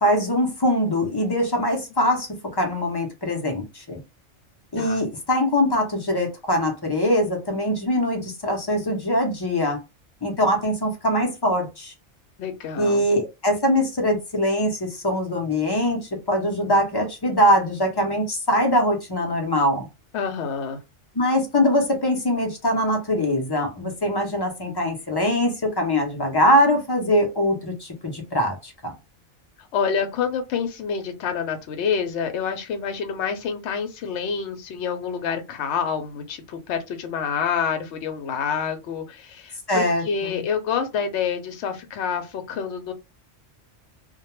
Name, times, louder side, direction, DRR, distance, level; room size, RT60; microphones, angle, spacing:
voice 1, 0.0-2.3 2.5-4.0 4.7-9.8 10.2-11.9 12.8-19.9 21.1-28.9 39.7-40.4, equal, 30° left, 0.5 m, -22 dB
voice 2, 12.4-13.0 20.1-20.8 29.6-42.9, left 6 dB, 75° left, 0.9 m, -27 dB
2.2 x 2.2 x 2.9 m
omnidirectional pair, 1.2 m